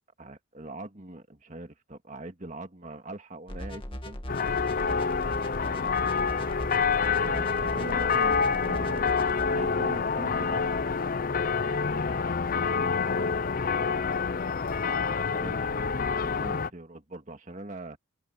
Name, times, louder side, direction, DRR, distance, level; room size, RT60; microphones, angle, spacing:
voice 1, 0.2-4.4 4.7-6.0 6.4-6.7 7.1-9.2 9.5-10.7 15.3-15.7 16.2-18.0, right 2 dB, 35° right, 1.9 m, -42 dB
sound 1, 3.5-9.5, equal, 25° left, 2.1 m, -39 dB
sound 2, 4.3-16.7, left 5 dB, 40° left, 0.5 m, -27 dB
voice 2, 11.8-13.4 14.7-15.3, left 3 dB, 65° left, 3.0 m, -46 dB
head